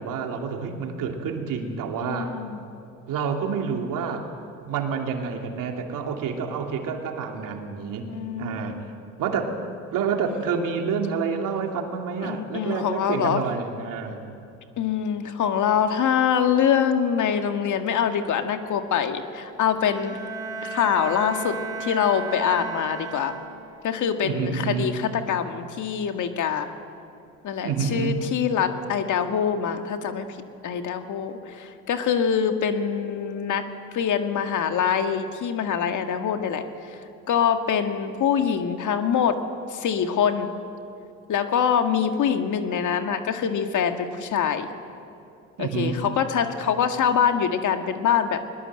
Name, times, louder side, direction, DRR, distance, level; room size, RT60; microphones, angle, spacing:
voice 1, 0.0-2.3 3.1-4.3 4.7-8.1 8.4-8.8 9.2-9.5 9.9-14.2 24.2-24.9 27.6-28.2 45.6-46.0, right 6 dB, 65° right, 3 dB, 2.9 m, -28 dB
voice 2, 2.0-2.6 8.1-8.8 12.2-13.4 14.8-20.2 20.6-23.4 23.8-26.7 27.4-30.3 30.6-33.7 33.9-36.6 37.3-39.4 39.7-40.5 41.3-44.7 45.6-48.4, left 8 dB, 60° left, 6 dB, 1.9 m, -24 dB
Bowed string instrument, 19.7-23.8, right 4 dB, 10° right, 5.1 m, -35 dB
21.5 x 20.5 x 7.8 m, 2.7 s
supercardioid pair, 70°, 35 cm